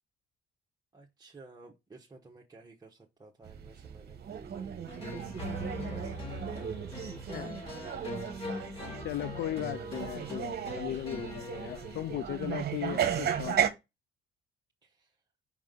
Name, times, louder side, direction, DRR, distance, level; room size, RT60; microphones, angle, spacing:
voice 1, 0.9-7.3 14.8-15.2, right 3 dB, 20° right, 1.3 m, -54 dB
sound 1, 3.4-13.7, right 8 dB, 55° right, 1.0 m, -35 dB
sound 2, 4.9-12.3, left 1 dB, 30° left, 3.0 m, -41 dB
voice 2, 9.0-13.6, left 13 dB, 65° left, 0.4 m, -37 dB
5.3 x 5.0 x 3.8 m
cardioid pair, 90°, 20 cm